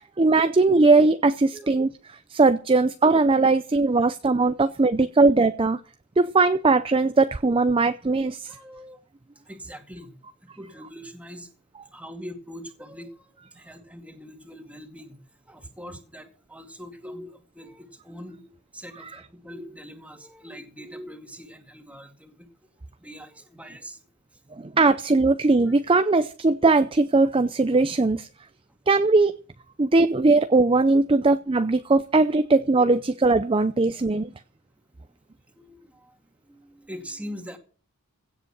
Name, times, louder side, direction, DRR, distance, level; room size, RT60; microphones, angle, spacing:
voice 1, 0.2-1.9 2.3-5.8 6.2-8.6 24.5-28.3 28.9-29.4 29.8-34.3, right 3 dB, 25° right, 0.5 m, -20 dB
voice 2, 8.5-9.0 9.5-10.2 10.6-11.5 11.9-15.2 15.5-22.5 23.0-24.0 27.7-27.8 31.1-31.2 35.5-36.2 36.5-37.6, equal, 5° right, 2.2 m, -42 dB
16.5 x 8.0 x 6.1 m
head